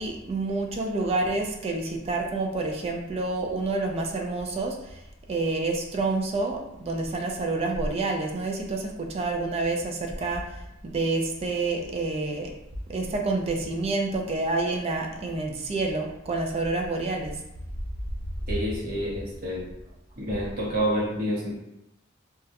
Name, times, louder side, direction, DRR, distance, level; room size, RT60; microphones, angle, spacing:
voice 1, 0.0-5.0 5.3-10.6 10.8-12.5 12.9-17.4, right 3 dB, 30° right, 2 dB, 0.3 m, -28 dB
voice 2, 18.5-19.7 20.2-21.6, equal, 45° right, -6 dB, 0.8 m, -28 dB
2.3 x 2.0 x 2.8 m, 0.85 s
head